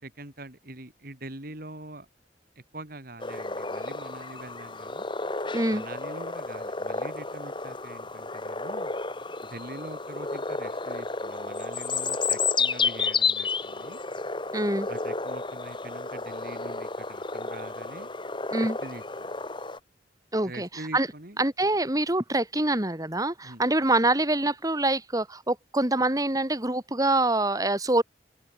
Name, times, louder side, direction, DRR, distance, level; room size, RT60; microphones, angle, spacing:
voice 1, 0.0-2.1 2.7-5.1 5.7-8.9 9.4-14.0 14.9-18.1 18.6-19.3 20.4-21.4 23.4-23.6, right 1 dB, 55° right, 3.9 m, -44 dB
sound 1, 3.2-19.8, left 4 dB, 30° left, 3.0 m, -31 dB
voice 2, 5.5-5.8 14.5-14.9 18.5-18.8 20.3-21.1 21.4-28.0, right 2 dB, 20° right, 2.6 m, -25 dB
head